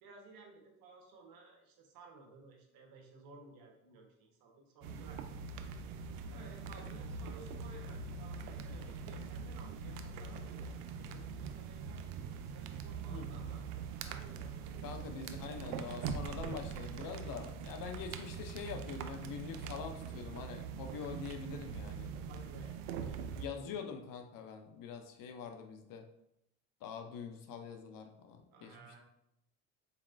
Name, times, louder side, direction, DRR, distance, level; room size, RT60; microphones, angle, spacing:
voice 1, 0.0-5.4 6.3-10.7 11.0-12.0 12.5-13.7 14.0-15.2 22.2-23.7 28.5-29.0, right 3 dB, 50° right, 1 dB, 1.1 m, -56 dB
sound 1, 4.8-23.5, right 6 dB, 80° right, 0.5 m, -43 dB
voice 2, 14.8-22.1 23.4-26.0 26.8-28.8, left 6 dB, 50° left, 5 dB, 0.5 m, -44 dB
4.2 x 3.1 x 2.5 m, 0.80 s
supercardioid pair, 90°, 45 cm